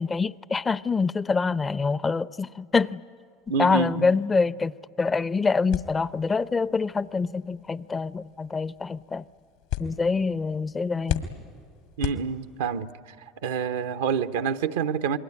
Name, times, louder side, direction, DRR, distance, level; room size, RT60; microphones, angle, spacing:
voice 1, 0.0-3.0 3.6-4.7 5.0-9.2 9.8-11.3, left 4 dB, 25° left, 0.6 m, -25 dB
voice 2, 3.5-4.1 12.0-12.9 13.4-15.2, right 6 dB, 75° right, 0.8 m, -27 dB
sound 1, 5.7-12.8, left 12 dB, 75° left, 1.9 m, -37 dB
27.0 x 21.5 x 9.8 m
hypercardioid pair, 75°, 0 cm